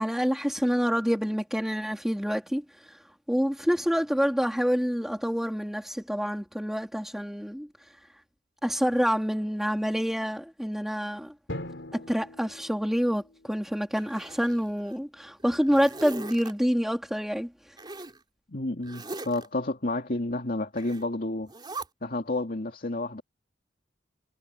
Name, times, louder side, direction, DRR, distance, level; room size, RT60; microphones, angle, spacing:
voice 1, 0.0-7.7 8.6-11.3 11.9-17.8, equal, ahead, 3.5 m, -27 dB
Drum, 11.5-14.0, left 1 dB, 85° left, 4.0 m, -41 dB
Zipper (clothing), 14.0-15.0 15.4-16.5 17.8-18.2 18.8-19.5 20.8-21.1 21.5-21.9, right 2 dB, 25° right, 3.6 m, -40 dB
voice 2, 18.5-21.5 22.0-23.2, left 2 dB, 50° left, 2.5 m, -30 dB
head